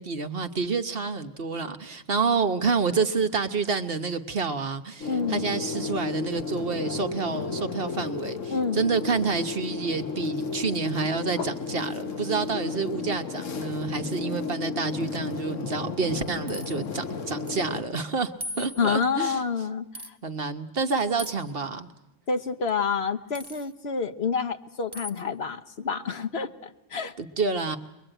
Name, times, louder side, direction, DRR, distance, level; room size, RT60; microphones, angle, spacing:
voice 1, 0.0-19.4 20.2-21.9 27.2-27.8, right 4 dB, 50° right, 9 dB, 1.2 m, -28 dB
sound 1, 5.0-17.8, left 4 dB, 90° left, 1.7 m, -33 dB
voice 2, 5.1-5.5 8.5-8.8 11.4-11.5 18.8-20.2 22.3-27.1, left 5 dB, 55° left, 10 dB, 1.3 m, -28 dB
sound 2, 16.1-16.9 17.5-17.7 17.9-18.0 18.4-19.1 19.9-20.1 21.2-21.5 23.3-23.7 24.9-25.2, equal, 20° right, 1.0 m, -39 dB
23.0 x 22.0 x 9.0 m, 0.90 s
omnidirectional pair, 1.3 m